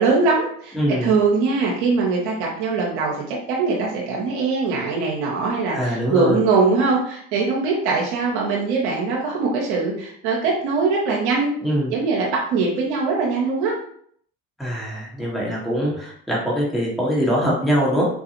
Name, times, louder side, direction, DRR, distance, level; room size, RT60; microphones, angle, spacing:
voice 1, 0.0-0.7 1.0-11.5 11.9-13.7, right 4 dB, 80° right, -3 dB, 0.8 m, -21 dB
voice 2, 0.7-1.1 5.7-6.4 11.6-11.9 14.6-18.0, equal, ahead, -5 dB, 1.4 m, -22 dB
4.3 x 2.3 x 2.9 m, 0.62 s
hypercardioid pair, 75°, 33 cm